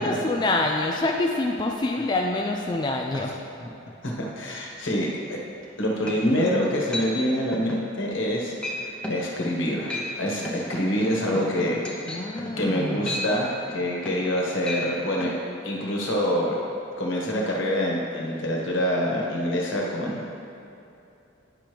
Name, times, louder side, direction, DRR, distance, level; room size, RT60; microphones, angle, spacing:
voice 1, 0.0-3.4 12.1-13.1, left 2 dB, 20° left, 1 dB, 0.3 m, -26 dB
voice 2, 4.0-5.4 5.8-11.8 12.1-12.2 12.6-15.3 15.6-16.6 17.0-20.3, equal, 75° left, -2 dB, 1.4 m, -26 dB
sound 1, 5.6-5.7 6.1-6.5 6.9-7.1 7.5-7.9 8.2-8.4 8.6-8.8 9.0-9.3 9.7-10.1 10.4-14.3 14.6-14.8 15.2-15.3, left 1 dB, 5° left, 0.8 m, -33 dB
9.8 x 6.1 x 3.4 m, 2.8 s
head